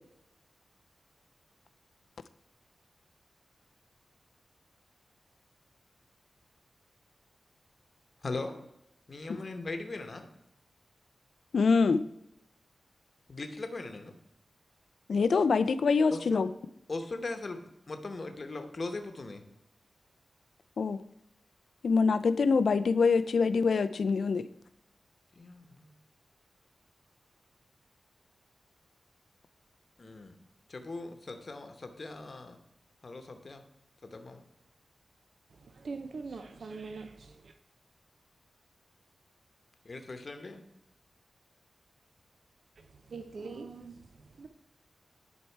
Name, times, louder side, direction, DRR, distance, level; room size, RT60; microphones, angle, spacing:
voice 1, 8.2-8.6 9.1-10.3 13.3-14.1 16.1-16.4 16.9-17.6 17.9-19.4 25.3-25.9 30.0-30.3 30.7-32.6 33.0-33.6 34.0-34.4 39.8-40.6, left 3 dB, 45° left, 0.9 m, -39 dB
voice 2, 11.5-12.0 15.1-16.5 20.8-21.0 21.8-24.4, left 4 dB, 75° left, 0.4 m, -25 dB
voice 3, 35.5-37.5 42.8-44.5, right 4 dB, 70° right, 0.5 m, -43 dB
10.0 x 4.5 x 4.5 m
wide cardioid pair, 95°, 0 cm